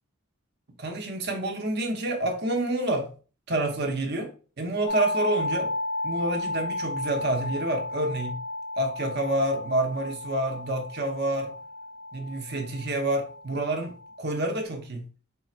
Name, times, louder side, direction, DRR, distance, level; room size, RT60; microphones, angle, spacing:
voice 1, 0.8-3.1 3.5-4.3 4.6-5.7 6.0-8.3 8.8-11.5 12.1-15.0, right 1 dB, 50° right, 3 dB, 0.9 m, -28 dB
sound 1, 4.9-14.6, left 2 dB, 85° left, 0.8 m, -33 dB
3.7 x 2.5 x 4.3 m, 0.37 s
head